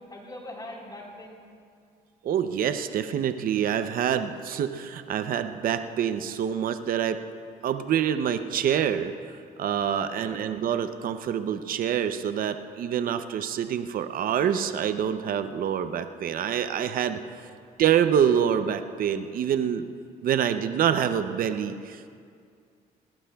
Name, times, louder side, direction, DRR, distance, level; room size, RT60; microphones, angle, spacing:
voice 1, 0.1-1.4 10.1-10.5 17.4-17.5, left 1 dB, 25° left, -2 dB, 4.1 m, -42 dB
voice 2, 2.2-7.2 7.6-17.2 17.8-19.8 20.2-22.1, right 9 dB, 60° right, 9 dB, 0.6 m, -26 dB
19.0 x 19.0 x 2.3 m, 2.3 s
supercardioid pair, 75°, 16 cm